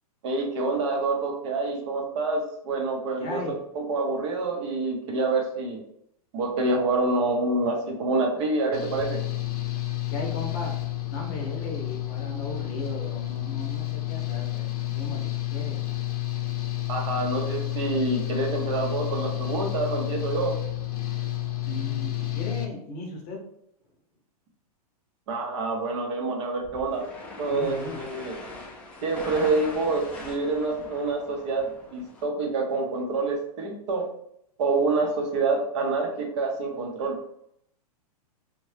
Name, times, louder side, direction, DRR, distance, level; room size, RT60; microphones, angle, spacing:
voice 1, 0.2-3.4 3.7-5.8 6.3-9.2 16.9-20.6 25.3-27.0 27.4-28.3 29.0-34.1 34.6-37.2, right 3 dB, 50° right, 2 dB, 0.7 m, -27 dB
voice 2, 3.2-3.6 10.1-10.8 11.1-14.7 14.9-15.8 21.6-23.4 27.5-28.1, left 2 dB, 35° left, 0 dB, 0.7 m, -36 dB
Engine / Mechanical fan, 8.7-22.7, left 17 dB, 70° left, 0.6 m, -30 dB
sound 1, 26.6-32.2, left 2 dB, 5° left, 0.3 m, -41 dB
2.7 x 2.2 x 3.2 m, 0.72 s
hypercardioid pair, 150°, 20 cm